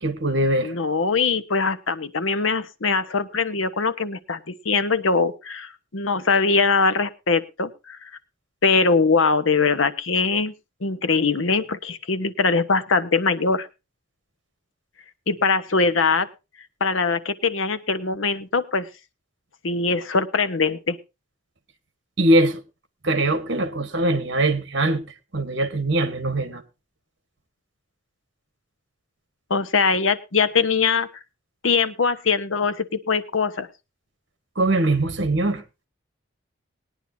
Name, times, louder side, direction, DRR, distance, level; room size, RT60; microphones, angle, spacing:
voice 1, 0.0-0.7 22.2-22.6 23.0-25.0 25.3-26.6 34.5-35.6, right 1 dB, 60° right, 1.6 m, -21 dB
voice 2, 0.6-8.1 8.6-10.5 10.8-13.7 15.3-16.3 16.8-18.9 19.6-21.0 29.5-31.1 31.6-33.7, left 4 dB, 80° left, 1.0 m, -22 dB
19.5 x 10.0 x 2.8 m
head